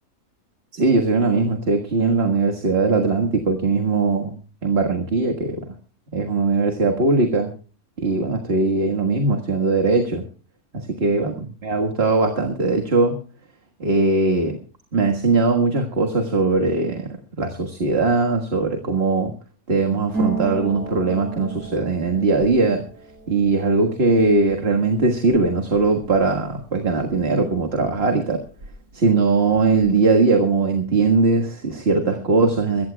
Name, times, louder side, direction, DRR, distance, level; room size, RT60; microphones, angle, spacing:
voice 1, 0.7-4.4 4.6-5.7 6.1-7.5 8.0-10.2 10.7-13.2 13.8-14.6 14.9-19.3 19.7-22.8 23.3-28.4 28.9-32.9, right 3 dB, 45° right, 3 dB, 1.8 m, -20 dB
Harp, 20.1-27.6 27.9-29.0 29.2-29.9, right 3 dB, 85° right, 3.7 m, -34 dB
23.5 x 15.5 x 2.3 m, 0.37 s
omnidirectional pair, 1.5 m